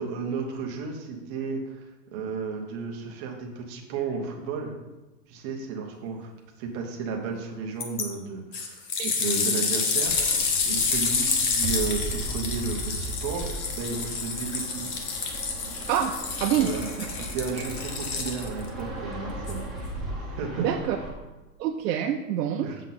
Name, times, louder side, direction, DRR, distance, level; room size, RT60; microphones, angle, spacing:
voice 1, 0.0-1.8 2.1-4.7 5.3-6.3 6.6-8.9 9.2-14.9 16.5-16.9 17.1-19.7 20.4-20.7 22.6-22.8, right 5 dB, 20° right, 1 dB, 0.5 m, -33 dB
sound 1, 7.8-8.0 8.5-18.7 19.5-19.6, left 5 dB, 30° left, 0.7 m, -28 dB
Fixed-wing aircraft airplane, 10.1-21.1, right 2 dB, ahead, 0.8 m, -37 dB
voice 2, 16.4-16.7 17.0-17.1 20.6-21.0 21.6-22.7, right 10 dB, 80° right, 2 dB, 0.7 m, -26 dB
7.4 x 3.9 x 5.7 m, 1.1 s
supercardioid pair, 165°, 48 cm